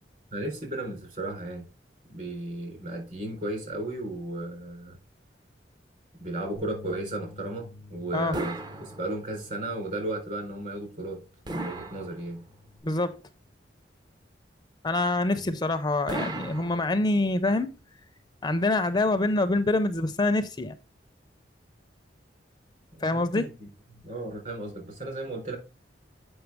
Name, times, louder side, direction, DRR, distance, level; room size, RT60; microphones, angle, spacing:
voice 1, 0.3-1.6 2.1-4.9 6.2-11.2 11.5-12.4 15.3-15.4 22.9-23.7 24.0-25.6, right 1 dB, 50° right, 3.8 m, -35 dB
Bass guitar, 6.6-12.8, left 2 dB, 70° right, 2.8 m, -50 dB
sound 1, 8.3-9.5 11.4-12.7 16.1-17.4, right 2 dB, 25° right, 0.6 m, -37 dB
voice 2, 12.8-13.2 14.8-17.7 18.4-20.7 23.0-23.5, left 2 dB, 25° left, 0.5 m, -25 dB
8.0 x 5.5 x 3.4 m
head